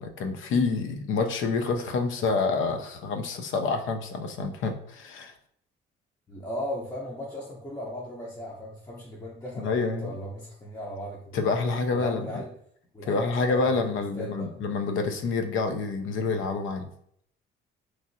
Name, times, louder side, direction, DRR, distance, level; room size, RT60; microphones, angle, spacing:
voice 1, 0.0-5.3 9.6-10.1 11.3-12.3 13.1-16.9, left 4 dB, 70° left, 6 dB, 0.5 m, -27 dB
voice 2, 6.3-11.4 11.9-12.5 12.9-13.8 14.1-14.5, left 1 dB, 15° left, -5 dB, 0.6 m, -37 dB
3.1 x 2.5 x 2.7 m, 0.66 s
cardioid pair, 85°, 21 cm